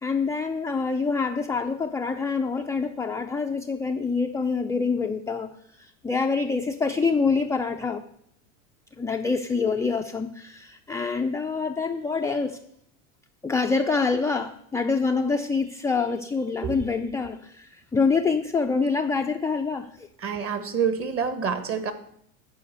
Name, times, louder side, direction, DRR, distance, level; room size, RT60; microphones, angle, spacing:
voice 1, 0.0-5.5 5.8-8.1 9.0-12.6 13.4-20.1, left 4 dB, 10° left, 3 dB, 0.3 m, -26 dB
voice 2, 20.2-21.9, right 6 dB, 35° right, 10 dB, 1.4 m, -27 dB
11.0 x 5.0 x 7.8 m, 0.70 s
supercardioid pair, 125°, 38 cm